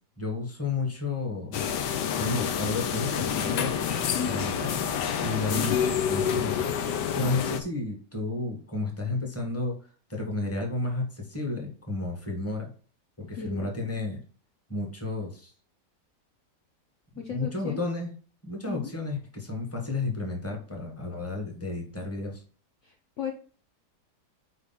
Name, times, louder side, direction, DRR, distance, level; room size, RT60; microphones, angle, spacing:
voice 1, 0.2-1.6 2.2-3.8 4.3-4.8 5.2-6.7 7.1-9.8 10.1-12.7 13.2-14.2 14.7-15.5 17.3-18.1 18.4-22.4, left 3 dB, 10° left, 1 dB, 1.3 m, -32 dB
sound 1, 1.5-7.6, left 8 dB, 85° left, 1.3 m, -28 dB
voice 2, 4.1-4.5 5.4-6.0 13.4-13.7 17.2-17.8 18.7-18.9 22.8-23.3, left 7 dB, 55° left, 1 dB, 1.0 m, -35 dB
4.8 x 4.1 x 5.6 m, 0.40 s
omnidirectional pair, 1.8 m